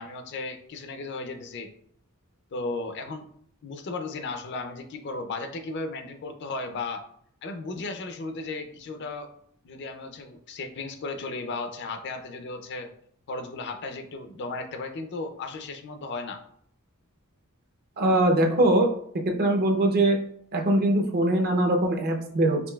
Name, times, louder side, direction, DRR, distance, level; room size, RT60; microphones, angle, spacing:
voice 1, 0.0-1.7 2.5-3.3 3.6-7.0 7.4-9.3 9.6-12.9 13.3-16.4, left 3 dB, 55° left, 7 dB, 0.4 m, -35 dB
voice 2, 18.0-18.9 19.3-20.2 20.5-22.6, right 1 dB, 45° right, 2 dB, 0.6 m, -22 dB
5.1 x 2.7 x 2.2 m, 0.65 s
head